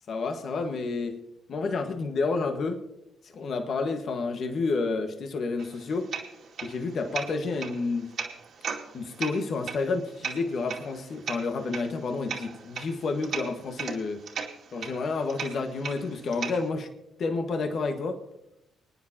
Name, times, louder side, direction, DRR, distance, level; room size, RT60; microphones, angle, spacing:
voice 1, 0.1-1.2 1.5-2.8 3.3-6.1 6.6-8.1 8.9-14.2 14.7-16.9 17.2-18.2, left 3 dB, 55° left, 5 dB, 1.5 m, -30 dB
sound 1, 5.6-16.7, right 6 dB, 65° right, 2.4 m, -38 dB
26.0 x 9.8 x 2.9 m, 0.83 s
supercardioid pair, 65°, 0 cm